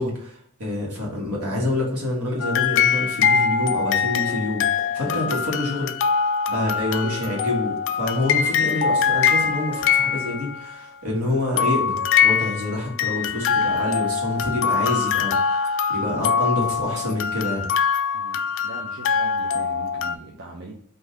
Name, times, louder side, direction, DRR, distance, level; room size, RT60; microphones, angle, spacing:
voice 1, 0.0-4.6 4.9-5.9 6.5-17.7, left 1 dB, 75° right, -2 dB, 1.7 m, -27 dB
sound 1, 2.4-10.7 11.6-20.1, left 7 dB, 60° left, 0.3 m, -23 dB
voice 2, 4.9-5.5 6.5-7.2 18.1-20.8, right 2 dB, 55° right, -1 dB, 0.6 m, -39 dB
3.9 x 2.7 x 4.8 m, 0.65 s
head